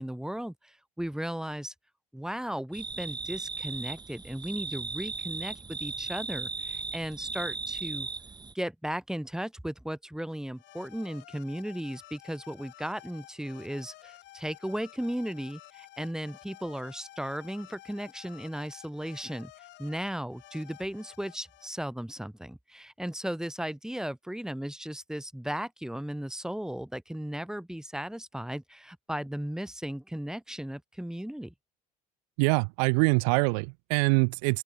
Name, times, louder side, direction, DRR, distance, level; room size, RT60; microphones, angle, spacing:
voice 1, 0.0-1.7 2.1-8.1 8.5-31.5, equal, 5° right, 6.1 m, -36 dB
sound 1, 2.7-8.5, right 4 dB, 20° right, 3.4 m, -37 dB
sound 2, 10.5-21.7, left 17 dB, 60° left, 7.8 m, -52 dB
voice 2, 32.4-34.6, right 36 dB, 75° right, 0.9 m, -24 dB
open air
hypercardioid pair, 75°, 20 cm